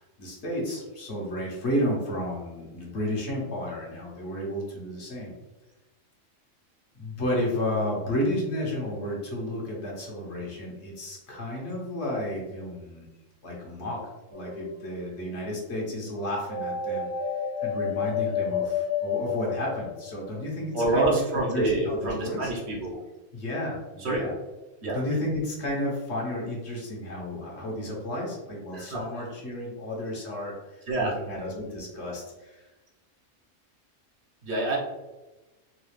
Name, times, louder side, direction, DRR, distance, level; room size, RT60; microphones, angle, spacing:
voice 1, 0.0-5.3 6.9-13.1 13.4-14.0 14.3-17.1 17.6-21.2 21.5-22.5 23.3-24.3 24.9-32.6, left 1 dB, 65° left, -3 dB, 1.3 m, -32 dB
sound 1, 14.3-15.0 16.5-20.3, left 7 dB, 30° right, 0.9 m, -30 dB
voice 2, 20.7-23.0 24.0-24.3 24.8-25.0 28.7-29.0 30.9-31.2 34.4-34.8, right 2 dB, 60° right, -3 dB, 1.1 m, -27 dB
4.0 x 2.4 x 3.2 m, 1.1 s
omnidirectional pair, 1.3 m